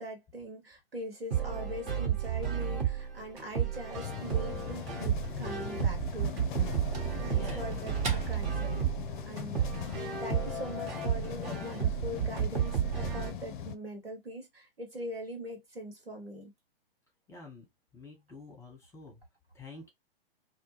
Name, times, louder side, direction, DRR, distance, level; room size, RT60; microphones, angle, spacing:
voice 1, 0.0-6.6 7.2-8.8 9.2-9.7 10.2-16.5, equal, 80° right, 1.3 m, -42 dB
sound 1, 1.3-13.3, right 9 dB, 55° right, 1.2 m, -32 dB
sound 2, 3.9-13.8, left 9 dB, 55° left, 0.4 m, -39 dB
sound 3, 5.6-9.0, right 3 dB, 25° right, 0.7 m, -44 dB
voice 2, 7.3-7.7 17.3-17.6 17.9-19.2 19.5-19.9, left 2 dB, 10° left, 0.9 m, -47 dB
2.2 x 2.1 x 3.1 m
figure-of-eight pair, 110°, 29 cm